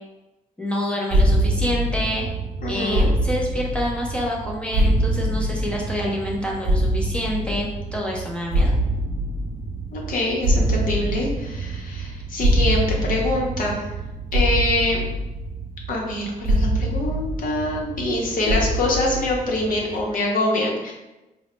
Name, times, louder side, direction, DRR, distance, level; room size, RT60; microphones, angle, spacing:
voice 1, 0.6-2.2 2.7-8.7, equal, 5° left, -3 dB, 0.4 m, -27 dB
sound 1, 1.1-20.0, right 1 dB, 85° right, 0.5 m, -24 dB
voice 2, 2.6-3.1 9.9-13.8 14.3-15.0 15.9-20.9, left 1 dB, 70° left, -1 dB, 0.8 m, -24 dB
3.9 x 2.1 x 3.0 m, 1.0 s
wide cardioid pair, 170°, 15 cm